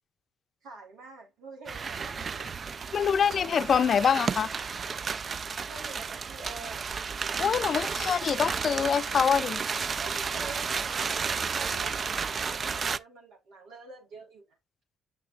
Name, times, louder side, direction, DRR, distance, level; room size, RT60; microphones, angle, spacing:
voice 1, 0.6-2.5 2.8-3.0 3.4-4.0 5.7-6.9 7.4-8.6 10.0-14.5, right 3 dB, 85° right, 3.7 m, -47 dB
sound 1, 1.7-13.0, right 5 dB, 45° right, 0.3 m, -32 dB
voice 2, 2.9-4.5 7.4-9.6, left 7 dB, 55° left, 0.5 m, -25 dB
6.7 x 6.4 x 2.5 m
cardioid pair, 90°, 0 cm